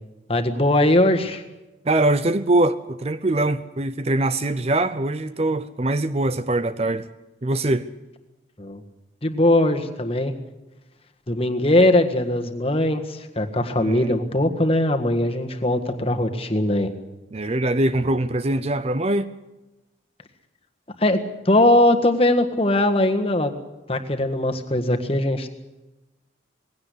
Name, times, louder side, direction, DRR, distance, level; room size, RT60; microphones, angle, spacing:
voice 1, 0.3-1.4 8.6-8.8 9.2-10.3 11.3-16.9 21.0-21.2 21.4-23.5 23.9-25.5, left 1 dB, 30° left, 1.6 m, -20 dB
voice 2, 1.8-7.1 7.4-7.9 13.8-14.1 17.3-19.3, right 2 dB, 30° right, 0.6 m, -22 dB
20.0 x 17.0 x 8.4 m
head